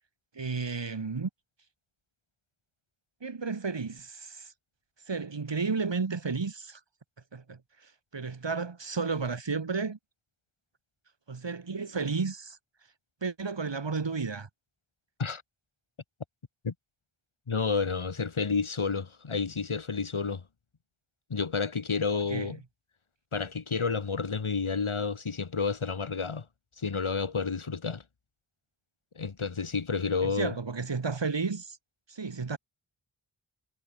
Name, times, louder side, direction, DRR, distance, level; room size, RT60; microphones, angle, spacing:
voice 1, 0.4-1.3 3.2-4.5 5.1-6.8 7.3-10.0 11.3-12.6 13.2-14.5 22.3-22.5 30.2-31.8 32.1-32.6, right 4 dB, 65° right, 3.6 m, -32 dB
voice 2, 17.5-20.4 21.3-22.6 23.3-26.5 26.8-28.0 29.1-30.5, left 5 dB, 90° left, 6.6 m, -30 dB
wide cardioid pair, 70°, 47 cm